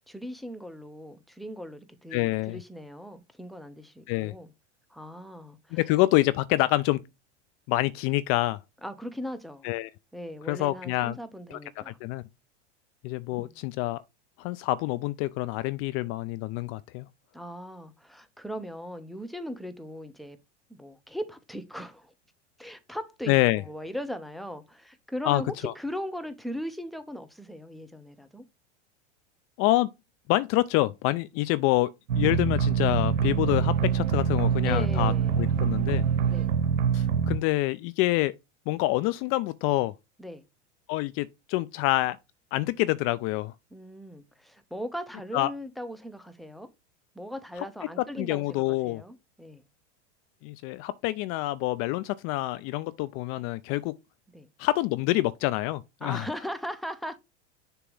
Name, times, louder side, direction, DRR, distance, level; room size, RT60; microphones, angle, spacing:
voice 1, 0.0-4.5 4.9-5.8 8.8-9.7 10.1-12.0 13.3-13.6 17.3-20.4 20.7-22.1 22.6-28.4 34.6-35.4 36.3-36.5 40.2-40.4 43.7-46.7 47.1-49.6 54.3-54.5 56.0-57.2, equal, ahead, 0.8 m, -38 dB
voice 2, 2.1-2.6 4.1-4.3 5.7-7.0 7.7-8.6 9.6-9.9 10.5-11.2 11.5-11.6 11.9-12.2 13.0-14.0 14.4-17.1 23.3-23.6 25.3-25.7 29.6-29.9 30.3-36.0 36.9-38.3 38.7-39.9 40.9-42.2 42.5-43.5 45.3-45.5 48.2-49.0 50.4-53.9 54.6-56.3, left 18 dB, 40° left, 0.4 m, -27 dB
sound 1, 32.1-37.4, right 7 dB, 85° right, 0.8 m, -25 dB
6.8 x 3.0 x 5.3 m
hypercardioid pair, 105°, 35 cm